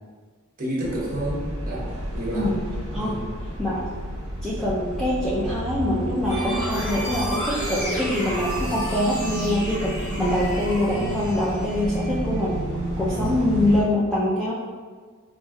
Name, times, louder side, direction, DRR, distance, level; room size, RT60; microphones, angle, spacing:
voice 1, 0.6-2.5 2.9-3.3 13.1-13.5, right 1 dB, 40° right, -5 dB, 0.8 m, -30 dB
sound 1, 0.8-13.8, right 1 dB, 65° right, 1.0 m, -31 dB
voice 2, 4.4-12.7 13.0-14.5, left 1 dB, 5° left, -9 dB, 0.4 m, -24 dB
sound 2, 6.3-12.5, equal, 55° left, 1.2 m, -32 dB
4.6 x 2.6 x 2.3 m, 1.5 s
head